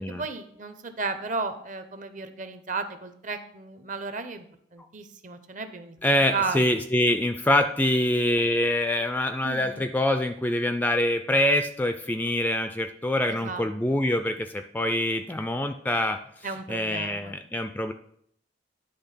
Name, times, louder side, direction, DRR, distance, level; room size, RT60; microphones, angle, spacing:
voice 1, 0.0-4.5 4.7-6.0 6.3-6.6 9.4-9.8 13.3-14.0 16.4-17.3, right 4 dB, 45° right, 9 dB, 0.7 m, -34 dB
voice 2, 6.0-16.2 16.7-17.9, left 1 dB, 10° left, 8 dB, 0.3 m, -25 dB
10.5 x 3.5 x 5.6 m, 0.68 s
head